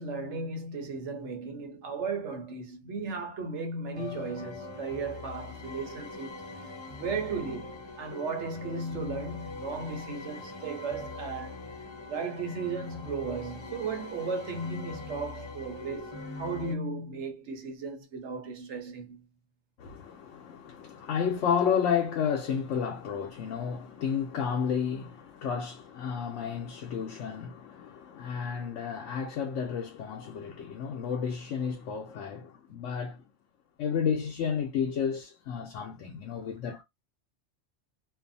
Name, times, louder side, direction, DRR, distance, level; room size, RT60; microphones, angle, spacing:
voice 1, 0.0-6.4 7.0-11.6 12.1-16.1 16.4-19.2, right 4 dB, 70° right, 1.1 m, -35 dB
sound 1, 3.9-16.7, left 3 dB, 30° left, 0.7 m, -42 dB
voice 2, 19.8-33.2 33.8-36.8, left 7 dB, 75° left, 1.0 m, -31 dB
2.7 x 2.3 x 2.6 m
omnidirectional pair, 1.2 m